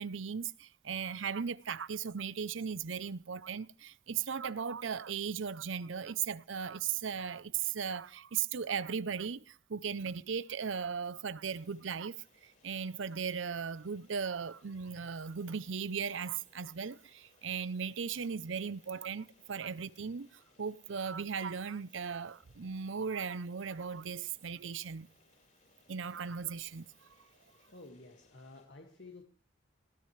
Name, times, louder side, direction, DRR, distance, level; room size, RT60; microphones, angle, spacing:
voice 1, 0.0-25.1 25.9-27.1, right 6 dB, 80° right, 0.6 m, -37 dB
sound 1, 11.5-28.7, left 4 dB, 40° left, 5.2 m, -68 dB
voice 2, 27.7-29.2, left 2 dB, 65° left, 2.1 m, -52 dB
29.5 x 12.5 x 3.3 m
head